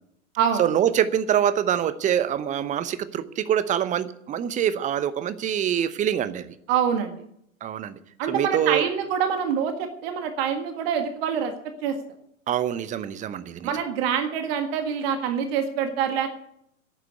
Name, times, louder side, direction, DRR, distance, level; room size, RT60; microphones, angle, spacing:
voice 1, 0.6-6.5 7.6-8.0 8.3-8.9 12.5-13.7, right 9 dB, 20° right, 14 dB, 0.7 m, -25 dB
voice 2, 6.7-7.2 8.2-11.5 11.8-12.0 13.6-16.3, right 7 dB, 45° right, 7 dB, 1.8 m, -25 dB
11.0 x 8.9 x 9.5 m, 0.74 s
figure-of-eight pair, 95°, 41 cm